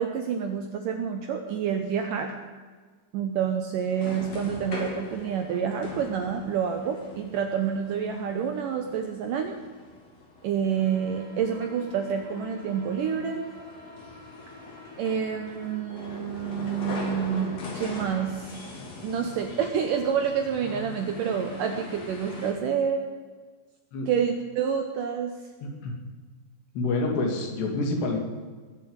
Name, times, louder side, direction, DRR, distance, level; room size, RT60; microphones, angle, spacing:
voice 1, 0.0-2.3 3.1-9.6 10.4-13.4 15.0-18.5 19.0-23.0 24.1-25.4, right 7 dB, 75° right, 5 dB, 2.0 m, -28 dB
sound 1, 3.9-22.5, left 2 dB, 40° left, 3.6 m, -41 dB
voice 2, 25.6-26.0 26.7-28.2, left 2 dB, 75° left, 2 dB, 4.5 m, -27 dB
20.5 x 7.3 x 8.7 m, 1.5 s
omnidirectional pair, 4.9 m